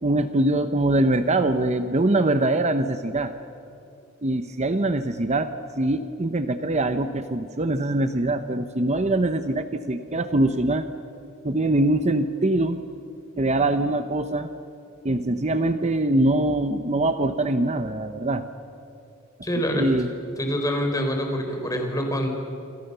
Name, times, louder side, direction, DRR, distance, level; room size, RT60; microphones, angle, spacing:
voice 1, 0.0-3.3 4.2-5.5 5.8-10.8 11.4-12.8 13.4-14.5 15.0-18.4 19.7-20.1, right 2 dB, 30° right, 9 dB, 0.9 m, -23 dB
voice 2, 19.4-19.9 20.4-22.3, equal, 15° left, 3 dB, 4.3 m, -25 dB
28.0 x 27.5 x 6.9 m, 2.7 s
head